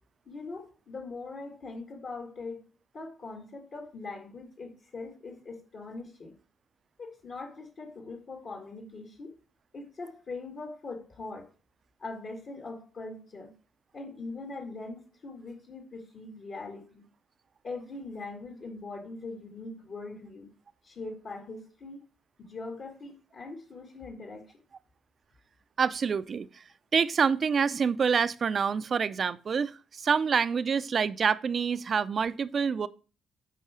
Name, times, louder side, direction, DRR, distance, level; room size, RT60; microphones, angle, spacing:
voice 1, 0.3-2.6 2.9-6.3 7.0-9.3 9.7-11.5 12.0-13.5 13.9-17.0 17.6-20.5 20.8-22.0 22.4-24.5, left 3 dB, 50° left, 1.9 m, -41 dB
voice 2, 25.8-26.5 26.9-32.9, right 6 dB, 45° right, 0.5 m, -27 dB
8.2 x 4.7 x 4.9 m
cardioid pair, 90°, 0 cm